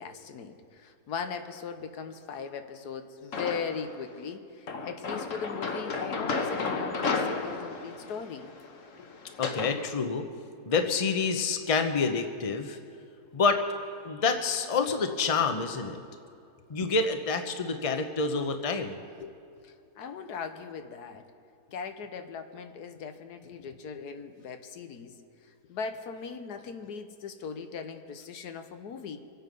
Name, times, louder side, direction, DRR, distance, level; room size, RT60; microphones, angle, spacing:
voice 1, 0.0-8.5 16.8-16.9 19.2-19.4 19.6-21.2 21.7-25.2 25.4-29.2, left 6 dB, 90° left, 8 dB, 1.5 m, -39 dB
sound 1, 3.3-3.9 4.7-9.7, left 4 dB, 55° left, 1.4 m, -33 dB
voice 2, 9.4-10.2 10.6-12.8 13.3-13.6 14.0-16.0 16.7-19.0, left 4 dB, 30° left, 6 dB, 0.7 m, -27 dB
25.0 x 8.8 x 5.3 m, 2.5 s
omnidirectional pair, 1.6 m